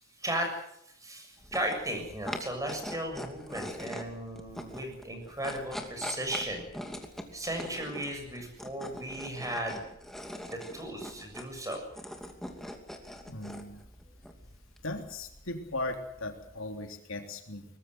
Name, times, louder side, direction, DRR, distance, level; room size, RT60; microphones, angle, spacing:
voice 1, 0.2-0.6 1.0-6.7 7.3-9.8 10.5-11.8, right 1 dB, 15° right, 4 dB, 7.2 m, -36 dB
sound 1, 1.4-16.7, equal, ahead, 2.7 m, -43 dB
voice 2, 13.3-13.8 14.8-17.7, left 2 dB, 70° left, 4 dB, 3.4 m, -37 dB
23.5 x 20.0 x 8.1 m, 0.75 s
head